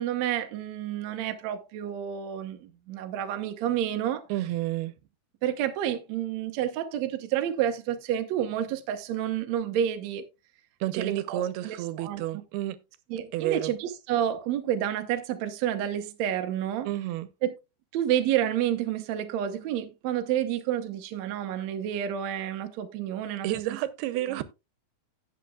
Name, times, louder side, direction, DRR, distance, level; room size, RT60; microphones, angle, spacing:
voice 1, 0.0-4.2 5.4-10.2 11.0-12.2 13.1-16.9 17.4-17.5 17.9-23.8 24.3-24.4, right 10 dB, 65° right, 1.8 m, -29 dB
voice 2, 4.3-4.9 10.8-12.8 13.3-13.7 16.9-17.3 23.4-24.4, right 14 dB, 90° right, 2.8 m, -30 dB
17.0 x 6.7 x 2.3 m
omnidirectional pair, 4.4 m